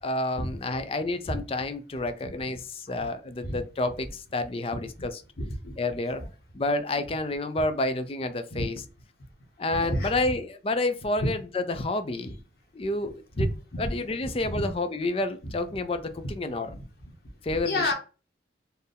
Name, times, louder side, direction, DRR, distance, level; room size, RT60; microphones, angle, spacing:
voice 1, 0.0-5.2 5.8-6.2 6.5-8.8 9.6-12.4 12.7-13.5 13.8-16.8 17.4-17.9, left 2 dB, 30° left, 9 dB, 0.4 m, -29 dB
voice 2, 5.4-5.7 6.1-6.2 8.5-8.6 9.7-10.1 13.4-13.5 14.5-14.7 17.6-17.9, left 1 dB, 60° left, 1 dB, 1.4 m, -29 dB
4.3 x 2.7 x 3.4 m, 0.33 s
head